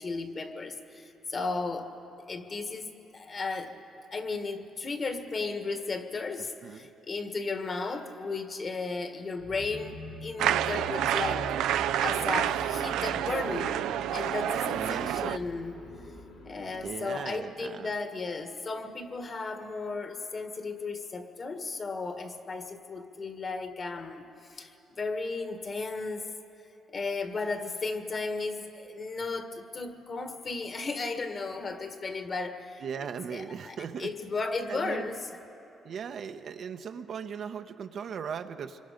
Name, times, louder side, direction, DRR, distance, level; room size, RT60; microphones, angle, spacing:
voice 1, 0.0-1.9 2.3-3.8 4.1-15.8 16.4-26.3 26.9-35.2, left 3 dB, 40° left, 6 dB, 1.7 m, -35 dB
sound 1, 9.4-17.1, left 2 dB, 90° left, 5.3 m, -45 dB
sound 2, 10.4-15.4, right 11 dB, 90° right, 0.4 m, -29 dB
voice 2, 14.7-15.3 16.8-17.9 32.8-34.1 34.7-35.1 35.8-38.8, right 7 dB, 60° right, 7 dB, 0.8 m, -38 dB
26.0 x 23.0 x 5.2 m, 3.0 s
cardioid pair, 90°, 0 cm